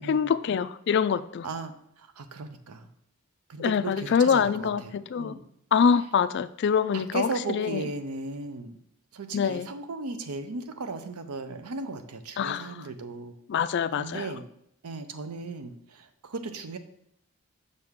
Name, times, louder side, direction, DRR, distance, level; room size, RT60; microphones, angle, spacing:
voice 1, 0.1-1.5 3.6-5.4 5.7-7.8 9.3-9.7 12.4-12.8 13.5-14.3, left 7 dB, 50° left, 15 dB, 0.3 m, -25 dB
voice 2, 2.2-2.9 3.5-5.4 6.9-8.7 9.1-13.3 14.0-14.4 14.8-16.8, right 3 dB, 85° right, 9 dB, 0.6 m, -36 dB
6.6 x 6.3 x 3.6 m, 0.74 s
head